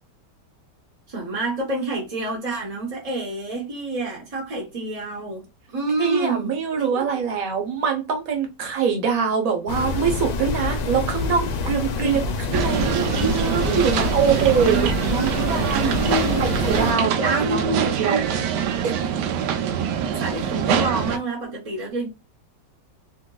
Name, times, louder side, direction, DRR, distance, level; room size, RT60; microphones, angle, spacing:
voice 1, 1.1-5.4 5.7-6.5 6.9-7.0 12.0-12.3 14.6-15.3 15.8-16.4 17.1-18.2 19.6-22.1, right 2 dB, 35° right, 0.6 m, -28 dB
voice 2, 6.0-16.0 16.4-17.1 17.5-18.2 18.8-19.1, right 6 dB, 60° right, 1.2 m, -24 dB
sound 1, 9.7-16.9, left 4 dB, 70° left, 1.1 m, -27 dB
sound 2, 12.5-21.2, right 8 dB, 75° right, 1.1 m, -24 dB
3.7 x 2.5 x 2.2 m
omnidirectional pair, 1.9 m